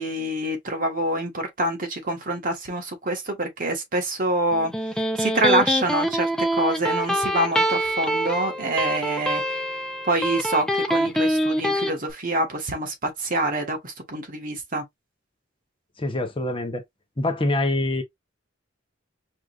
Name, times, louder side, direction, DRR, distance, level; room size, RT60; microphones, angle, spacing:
voice 1, 0.0-4.7 5.2-6.3 6.5-9.4 10.1-14.8, right 1 dB, 45° right, 1.4 m, -26 dB
Electric guitar, 4.5-11.9, equal, 5° left, 0.6 m, -25 dB
voice 2, 16.0-16.8 17.2-18.0, left 2 dB, 30° left, 0.8 m, -25 dB
4.9 x 3.1 x 2.4 m
head